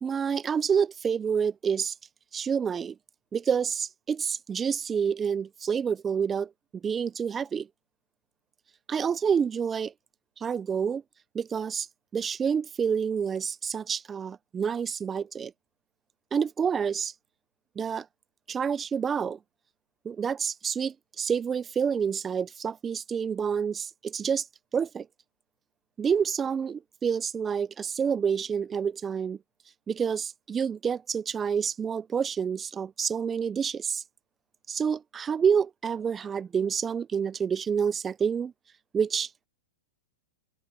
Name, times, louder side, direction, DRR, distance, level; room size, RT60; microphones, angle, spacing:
voice 1, 0.0-1.9 2.3-2.9 3.3-6.5 6.8-7.7 8.9-9.9 10.4-11.0 11.3-11.9 12.1-15.5 16.3-17.1 17.8-18.1 18.5-19.4 20.0-24.4 24.7-25.1 26.0-29.4 29.9-34.0 34.7-38.5 38.9-39.5, right 7 dB, 20° right, 0.5 m, -28 dB
open air
hypercardioid pair, 135°, 0 cm